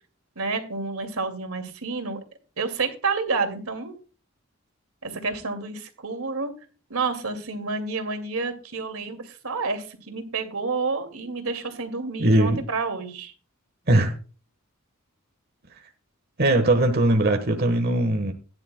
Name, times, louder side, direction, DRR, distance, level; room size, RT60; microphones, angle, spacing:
voice 1, 0.4-2.2 2.6-4.0 5.0-6.5 6.9-13.3, right 4 dB, 90° right, 6 dB, 2.2 m, -29 dB
voice 2, 12.2-12.6 13.9-14.1 16.4-18.3, right 1 dB, 45° right, 4 dB, 1.3 m, -20 dB
16.5 x 10.5 x 2.2 m, 0.36 s
head